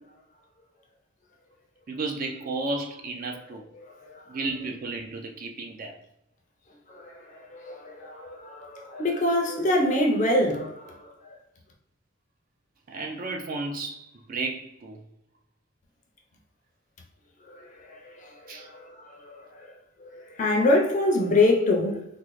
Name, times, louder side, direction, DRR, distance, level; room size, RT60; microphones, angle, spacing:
voice 1, 1.9-3.6 4.3-5.9 12.9-15.0 18.5-18.7, right 3 dB, 40° right, 0.3 m, -33 dB
voice 2, 4.0-4.4 6.9-11.4 17.4-19.7 20.0-22.0, left 2 dB, 35° left, 0.4 m, -26 dB
3.6 x 2.0 x 3.0 m
head